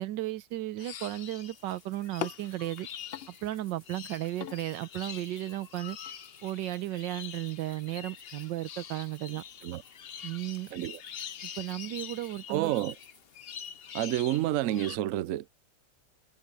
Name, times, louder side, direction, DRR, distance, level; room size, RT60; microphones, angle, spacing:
voice 1, 0.0-2.9 3.3-6.0 6.4-9.4 10.2-10.7 11.6-12.7, right 15 dB, 90° right, 1.4 m, -35 dB
sound 1, 0.8-15.0, left 9 dB, 65° left, 0.6 m, -44 dB
sound 2, 1.5-13.7, left 1 dB, 15° left, 2.7 m, -62 dB
voice 2, 10.7-11.0 12.5-13.0 13.9-15.5, right 14 dB, 70° right, 0.8 m, -29 dB
omnidirectional pair, 1.9 m